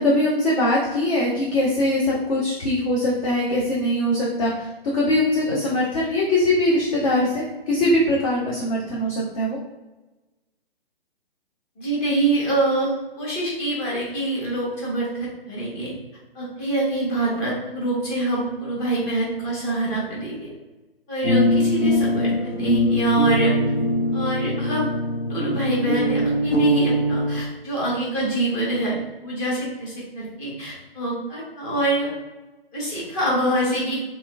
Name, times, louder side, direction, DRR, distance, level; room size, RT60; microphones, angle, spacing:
voice 1, 0.0-4.7 4.9-9.6, left 1 dB, 35° left, -5 dB, 0.6 m, -22 dB
voice 2, 11.8-15.9 16.3-20.5 21.1-23.5 24.1-24.9 25.2-32.1 32.7-34.0, right 2 dB, 20° left, -6 dB, 1.0 m, -25 dB
sound 1, 21.2-27.4, equal, 90° left, 0.8 m, -22 dB
3.0 x 2.9 x 2.3 m, 1.1 s
figure-of-eight pair, 135°, 31 cm